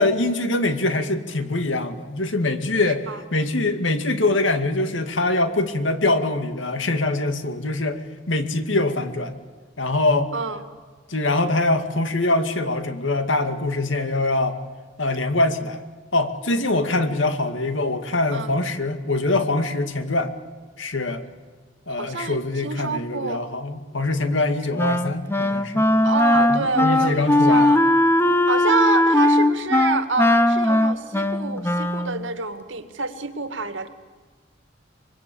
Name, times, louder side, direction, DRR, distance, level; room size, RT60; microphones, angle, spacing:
voice 1, 0.0-3.1 3.3-9.3 9.8-10.3 11.1-14.6 15.0-15.8 16.1-20.3 20.8-21.2 21.9-25.8 26.3-27.7, left 2 dB, 85° left, 8 dB, 2.2 m, -23 dB
voice 2, 2.9-3.2 10.3-10.6 18.3-18.5 22.0-23.4 26.0-27.8 28.5-33.9, right 4 dB, 80° right, 9 dB, 2.2 m, -27 dB
Wind instrument woodwind instrument, 24.8-32.2, left 1 dB, 15° left, 0.9 m, -19 dB
25.0 x 23.5 x 8.6 m, 1.5 s
head